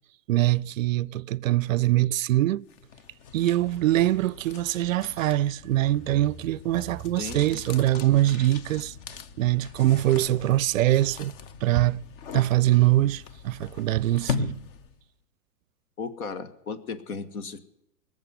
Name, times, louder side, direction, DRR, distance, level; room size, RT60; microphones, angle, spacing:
voice 1, 0.3-2.7 3.3-8.9 9.4-11.3 11.6-12.0 12.3-14.5, right 15 dB, 60° right, 0.5 m, -23 dB
sound 1, 2.7-15.1, left 5 dB, 35° left, 0.8 m, -39 dB
sound 2, 5.8-10.4, right 7 dB, 5° right, 0.5 m, -46 dB
voice 2, 7.2-7.6 16.0-17.6, left 5 dB, 65° left, 1.6 m, -35 dB
19.5 x 7.4 x 9.6 m
hypercardioid pair, 125°, 47 cm